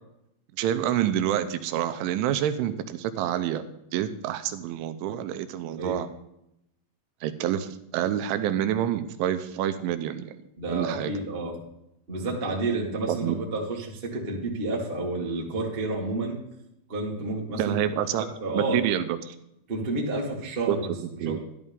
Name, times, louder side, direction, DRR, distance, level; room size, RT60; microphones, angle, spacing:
voice 1, 0.6-3.6 3.9-6.1 7.2-10.3 10.7-11.1 13.1-13.4 17.6-18.3 18.5-19.4 20.7-20.8 21.2-21.4, right 11 dB, 85° right, 10 dB, 3.0 m, -27 dB
voice 2, 10.6-11.6 12.1-16.4 16.9-17.7 18.2-18.8 19.7-20.9 21.2-21.4, right 2 dB, 65° right, -2 dB, 0.5 m, -30 dB
12.5 x 12.0 x 3.7 m, 0.82 s
omnidirectional pair, 5.7 m